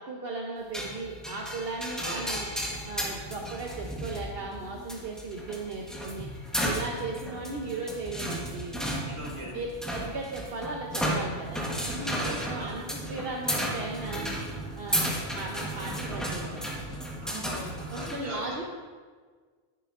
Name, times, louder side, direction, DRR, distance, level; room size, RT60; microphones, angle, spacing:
voice 1, 0.0-2.5 2.9-6.3 6.6-8.8 9.5-14.3 14.8-16.7 17.9-18.8, right 3 dB, 60° right, -1 dB, 1.0 m, -37 dB
sound 1, 0.7-18.3, equal, ahead, 1.1 m, -34 dB
voice 2, 9.1-9.6 12.1-12.7 14.9-15.2 17.2-18.6, equal, 25° right, -2 dB, 1.5 m, -40 dB
11.0 x 9.8 x 2.5 m, 1.6 s
omnidirectional pair, 1.2 m